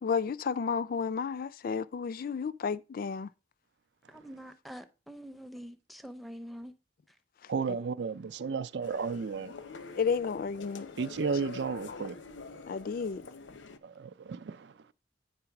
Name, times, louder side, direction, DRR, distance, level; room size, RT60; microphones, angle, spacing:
voice 1, 0.0-3.3 7.4-7.5 9.9-10.9 11.9-12.1 12.7-13.2, left 5 dB, 50° left, 0.4 m, -32 dB
voice 2, 4.1-6.7, equal, ahead, 0.5 m, -45 dB
voice 3, 7.5-9.5 11.0-12.2 13.8-14.9, right 5 dB, 65° right, 0.4 m, -33 dB
sound 1, 8.8-13.8, left 5 dB, 85° left, 0.8 m, -46 dB
8.9 x 3.8 x 5.8 m
head